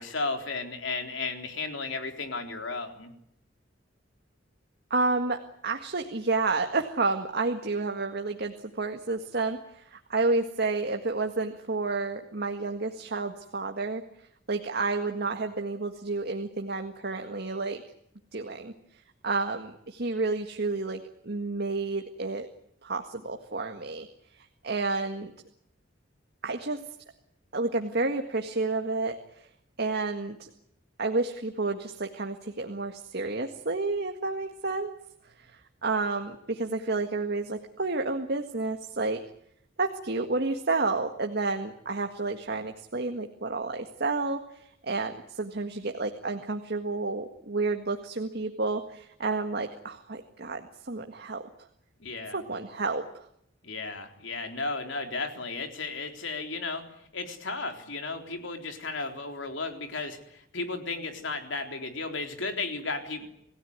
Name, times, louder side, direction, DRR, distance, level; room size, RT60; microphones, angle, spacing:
voice 1, 0.0-3.1 52.0-52.4 53.6-56.8 57.1-63.3, left 3 dB, 75° left, 5 dB, 3.8 m, -34 dB
voice 2, 4.9-14.0 14.5-17.8 18.3-18.7 19.2-22.5 22.8-24.1 24.4-25.3 26.4-26.8 27.5-29.5 29.8-30.5 31.0-34.9 35.4-39.2 39.8-51.4 52.3-53.3, right 3 dB, 55° right, 5 dB, 1.8 m, -30 dB
28.0 x 16.5 x 9.6 m, 0.76 s
head